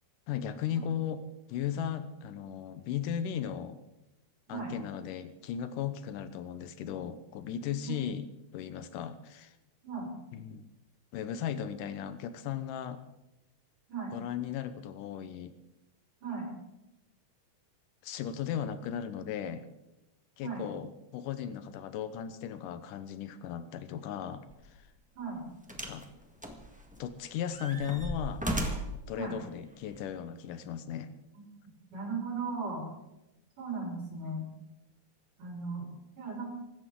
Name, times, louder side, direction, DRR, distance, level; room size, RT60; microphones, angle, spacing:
voice 1, 0.3-1.2 1.5-3.8 4.5-9.6 10.3-10.7 11.1-13.0 14.1-15.6 18.0-19.7 20.4-24.9 25.7-26.1 27.0-28.5 29.1-31.1, left 9 dB, 90° left, 11 dB, 2.5 m, -36 dB
sound 1, 24.5-24.7 25.7-26.0 26.4-27.1 27.5-29.0 29.9-30.0, equal, 10° right, 0.4 m, -35 dB
voice 2, 31.9-32.9 33.6-34.5 35.4-36.5, right 4 dB, 80° right, -3 dB, 6.0 m, -37 dB
24.0 x 13.5 x 3.8 m, 0.92 s
omnidirectional pair, 3.7 m